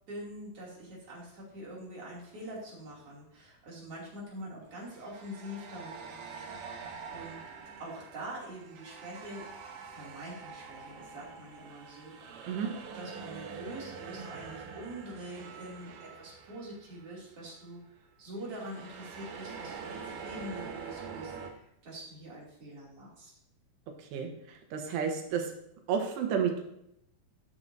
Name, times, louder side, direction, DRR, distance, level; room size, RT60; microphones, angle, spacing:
voice 1, 0.1-7.4 7.8-9.6 9.8-12.5 12.9-17.8 18.2-23.3, right 1 dB, 40° right, -5 dB, 3.3 m, -45 dB
sound 1, 2.1-2.4 4.8-17.2 17.4-17.7 18.4-21.5, right 5 dB, 70° right, 2.2 m, -45 dB
voice 2, 24.7-25.4 25.9-26.7, right 7 dB, 85° right, 3 dB, 3.2 m, -30 dB
13.0 x 6.6 x 2.7 m, 0.77 s
omnidirectional pair, 4.7 m